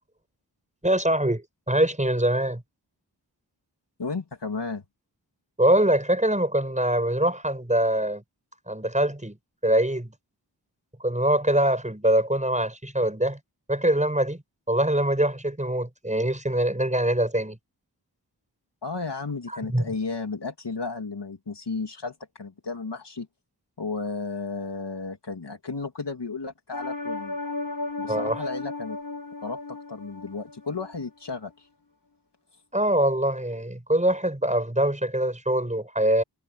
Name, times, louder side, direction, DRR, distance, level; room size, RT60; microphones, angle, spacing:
voice 1, 0.8-2.6 5.6-8.2 8.7-9.4 9.6-10.1 11.0-13.4 13.7-14.4 14.7-17.6 19.7-19.8 28.1-28.4 32.7-36.2, right 1 dB, 15° right, 6.4 m, -23 dB
voice 2, 4.0-4.8 18.8-23.3 23.8-27.4 28.0-29.0 29.4-31.7, left 4 dB, 70° left, 2.9 m, -33 dB
sound 1, 26.7-30.9 31.3-31.4, left 3 dB, 50° left, 7.3 m, -34 dB
wide cardioid pair, 65°, 43 cm